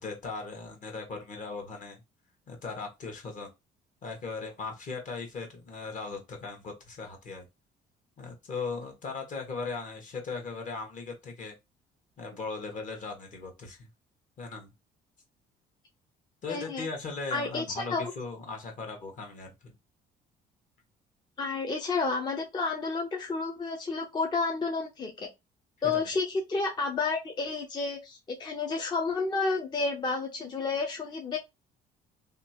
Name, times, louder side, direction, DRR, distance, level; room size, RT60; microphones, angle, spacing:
voice 1, 0.0-2.0 2.5-3.5 4.0-7.5 8.2-11.5 12.2-13.9 14.4-14.7 16.4-19.7 25.9-26.0, left 4 dB, 50° left, 3 dB, 1.1 m, -38 dB
voice 2, 16.5-16.9 17.3-18.0 21.4-25.3 25.8-31.4, left 4 dB, 25° left, 2 dB, 0.5 m, -31 dB
2.8 x 2.3 x 2.8 m, 0.22 s
cardioid pair, 110°, 17 cm